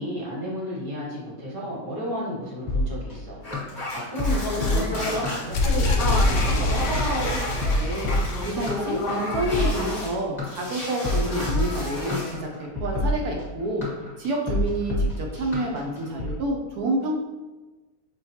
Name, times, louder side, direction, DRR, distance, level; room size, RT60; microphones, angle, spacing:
voice 1, 0.0-3.4 3.9-6.9, equal, 35° right, -5 dB, 0.9 m, -32 dB
sound 1, 2.7-16.3, left 1 dB, ahead, 1.0 m, -28 dB
sound 2, 3.4-10.2 10.4-12.4, left 1 dB, 45° left, 1.2 m, -31 dB
sound 3, 5.5-9.4, left 2 dB, 75° left, 1.2 m, -26 dB
voice 2, 7.8-8.1 8.4-13.8 14.2-17.2, right 1 dB, 70° right, 0 dB, 1.0 m, -28 dB
5.4 x 2.3 x 2.8 m, 1.2 s
omnidirectional pair, 2.0 m